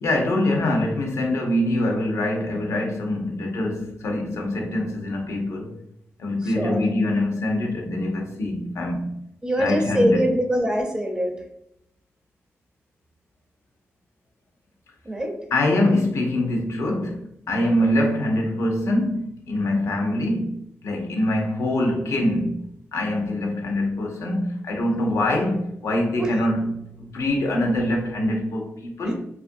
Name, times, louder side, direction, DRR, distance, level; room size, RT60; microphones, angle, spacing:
voice 1, 0.0-5.8 6.2-9.1 9.6-10.2 15.5-22.6 22.9-29.1, left 1 dB, 85° left, 0.6 m, -24 dB
voice 2, 6.4-6.8 9.4-11.3 15.1-15.4 26.2-26.3 29.0-29.1, equal, 15° right, 0.5 m, -23 dB
2.8 x 2.4 x 2.5 m
wide cardioid pair, 130°, 5 cm